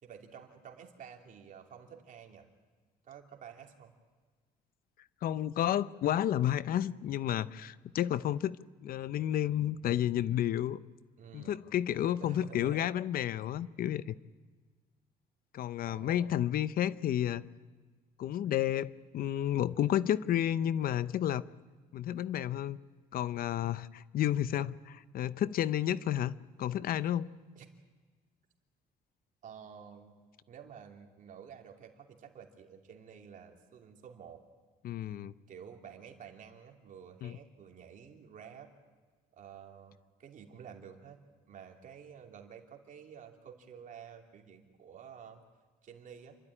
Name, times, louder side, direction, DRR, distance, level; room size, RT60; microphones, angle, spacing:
voice 1, 0.0-2.5 3.0-3.9 11.2-11.6 12.2-12.9 15.9-16.3 27.5-27.7 29.4-30.1 30.5-34.4 35.5-38.7 39.4-41.2 41.5-45.4 45.8-46.4, right 7 dB, 50° right, 3 dB, 3.0 m, -51 dB
voice 2, 5.2-8.6 8.8-10.8 11.3-14.2 15.5-17.5 18.2-21.4 21.9-22.8 23.1-26.3 26.6-27.3 34.8-35.3 37.2-37.4, left 11 dB, 60° left, 16 dB, 0.7 m, -31 dB
28.0 x 12.5 x 9.9 m, 1.4 s
cardioid pair, 110°, 17 cm